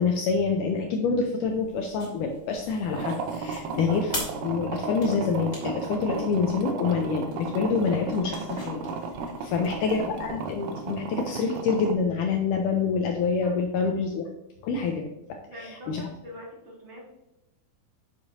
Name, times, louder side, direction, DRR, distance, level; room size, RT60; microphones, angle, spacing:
voice 1, 0.0-4.1 4.4-8.8 9.4-14.3 14.6-15.1 15.6-16.1, left 5 dB, 85° left, 3 dB, 1.8 m, -26 dB
sound 1, 1.5-10.3, left 1 dB, 25° left, 2.3 m, -43 dB
sound 2, 2.9-11.9, right 4 dB, 80° right, 1.8 m, -34 dB
voice 2, 9.4-10.0 13.4-13.6 13.9-14.0 15.5-17.1, equal, 40° right, -3 dB, 2.1 m, -45 dB
9.8 x 6.7 x 2.7 m, 0.90 s
omnidirectional pair, 4.6 m